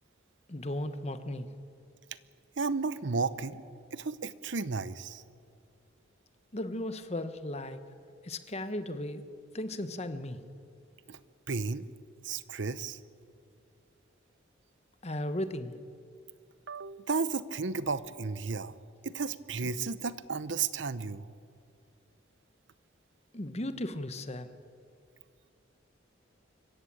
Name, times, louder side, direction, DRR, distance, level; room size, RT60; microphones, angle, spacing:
voice 1, 0.5-1.5 6.5-7.8 8.2-9.3 9.5-10.4 15.0-15.8 23.3-24.5, left 1 dB, 35° left, 11 dB, 1.0 m, -36 dB
voice 2, 2.6-3.6 3.9-5.2 11.1-11.2 11.5-11.9 12.2-13.0 16.7-18.7 19.0-21.3, right 4 dB, 70° right, 16 dB, 0.8 m, -33 dB
25.0 x 15.0 x 8.7 m, 2.4 s
head